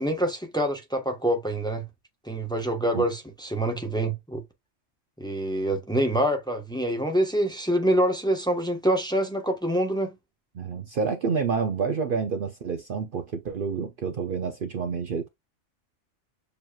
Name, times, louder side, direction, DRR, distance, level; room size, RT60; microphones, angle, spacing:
voice 1, 0.0-1.8 2.3-4.4 5.2-10.1, right 1 dB, 5° left, 1.0 m, -26 dB
voice 2, 10.5-15.3, right 5 dB, 55° right, 0.7 m, -28 dB
7.0 x 2.9 x 2.3 m
omnidirectional pair, 1.2 m